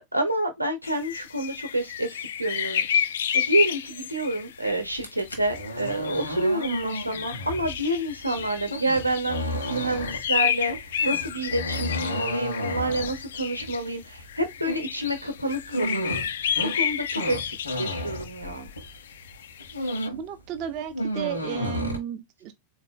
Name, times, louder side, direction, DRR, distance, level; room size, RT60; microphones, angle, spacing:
voice 1, 0.0-16.3 16.6-18.7, right 1 dB, 85° right, 0.9 m, -28 dB
sound 1, 0.8-13.9 14.3-20.1, left 9 dB, 60° left, 0.3 m, -31 dB
sound 2, 4.9-19.0 19.3-20.3 20.6-22.0, equal, 80° left, 1.1 m, -33 dB
voice 2, 20.1-22.5, right 9 dB, 40° right, 0.6 m, -33 dB
3.9 x 2.8 x 3.7 m
figure-of-eight pair, 90°, 0 cm